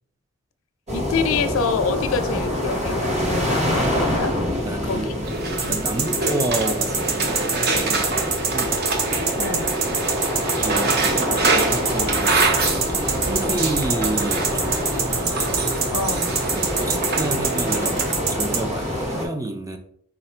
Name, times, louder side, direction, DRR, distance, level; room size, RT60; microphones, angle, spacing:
voice 1, 0.9-4.4 4.8-5.1 5.6-5.8 9.4-9.8 15.9-16.4, left 5 dB, 70° left, 9 dB, 0.5 m, -26 dB
sound 1, 0.9-19.3, equal, 30° right, 1.2 m, -26 dB
voice 2, 4.6-5.3 5.6-8.8 10.3-12.6 12.9-15.3 16.5-19.8, right 2 dB, 15° right, 6 dB, 0.4 m, -30 dB
sound 2, 5.2-18.1, right 3 dB, 50° right, 0.7 m, -26 dB
sound 3, 5.6-18.6, right 5 dB, 70° right, 0.8 m, -24 dB
4.9 x 2.5 x 4.3 m, 0.64 s
head